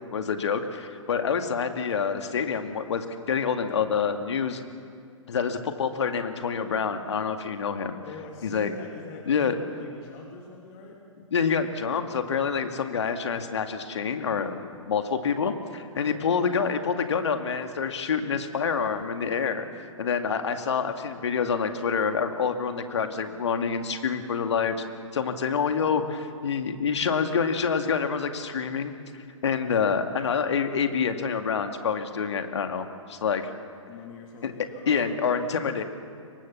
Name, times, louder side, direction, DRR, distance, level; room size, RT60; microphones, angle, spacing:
voice 1, 0.1-4.6 5.3-8.0 8.4-8.7 9.3-9.5 11.3-24.8 25.1-33.4 34.4-34.5 34.9-35.8, left 6 dB, 60° left, 7 dB, 2.2 m, -27 dB
voice 2, 8.0-11.0 16.0-16.2 33.5-33.6 33.9-35.7, left 4 dB, 35° left, 0 dB, 2.9 m, -43 dB
26.5 x 24.0 x 7.1 m, 2.3 s
figure-of-eight pair, 115°, 17 cm